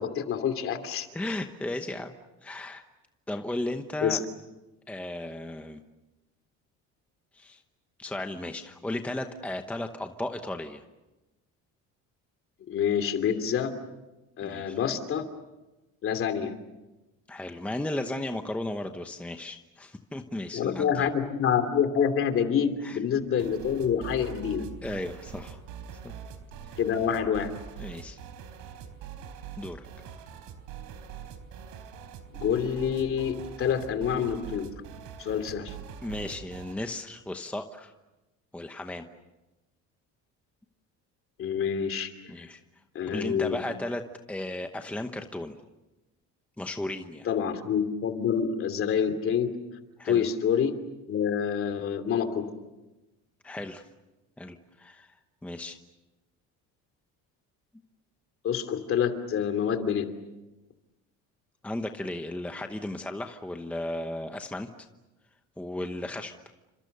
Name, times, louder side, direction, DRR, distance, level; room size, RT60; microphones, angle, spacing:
voice 1, 0.0-1.1 4.0-4.2 12.7-13.7 14.4-15.2 16.0-16.5 20.5-24.6 26.8-27.5 32.3-34.7 35.2-35.7 41.4-42.1 42.9-43.6 47.3-49.5 50.0-50.7 51.1-52.5 58.4-60.0, left 8 dB, 45° left, 8 dB, 2.8 m, -27 dB
voice 2, 1.1-2.2 2.4-2.8 3.3-4.2 4.9-5.8 7.3-7.6 8.0-10.8 14.4-14.8 17.3-21.1 22.8-23.0 24.8-25.6 26.0-26.1 27.8-28.2 29.6-29.9 36.0-37.9 38.5-39.1 42.3-42.6 43.1-45.6 46.6-47.3 50.0-50.2 53.4-53.8 54.4-55.1 55.4-55.8 61.6-64.7 65.6-66.3, left 1 dB, 5° left, 6 dB, 1.0 m, -35 dB
sound 1, 23.4-36.8, right 8 dB, 85° right, 3.9 m, -43 dB
30.0 x 26.5 x 6.8 m, 1.0 s
cardioid pair, 155°, 31 cm